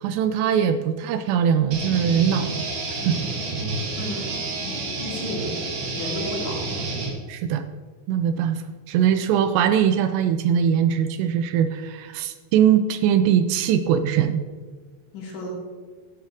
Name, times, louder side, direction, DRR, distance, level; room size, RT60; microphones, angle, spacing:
voice 1, 0.0-2.7 3.0-3.3 7.3-7.6 8.1-14.4, right 8 dB, 80° right, 10 dB, 2.6 m, -21 dB
sound 1, 1.7-7.1, right 3 dB, 55° right, 2.1 m, -29 dB
voice 2, 4.0-5.6 5.9-6.9 15.1-15.5, left 1 dB, 75° left, -3 dB, 4.9 m, -33 dB
12.5 x 11.0 x 3.6 m, 1.5 s
omnidirectional pair, 5.2 m